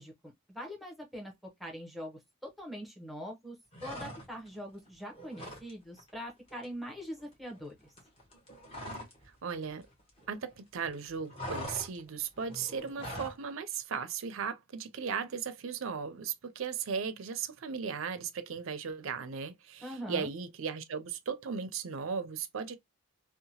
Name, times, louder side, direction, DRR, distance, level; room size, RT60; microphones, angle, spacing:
voice 1, 0.0-1.3 1.6-3.6 3.8-7.9 19.8-20.3, equal, ahead, 0.7 m, -43 dB
sound 1, 3.7-4.6 4.9-5.7 6.0-6.2 6.5-9.3 9.5-10.6 10.9-13.4, equal, 25° left, 1.0 m, -43 dB
voice 2, 9.4-9.8 10.3-22.8, right 6 dB, 75° right, 0.5 m, -36 dB
2.8 x 2.1 x 2.7 m
head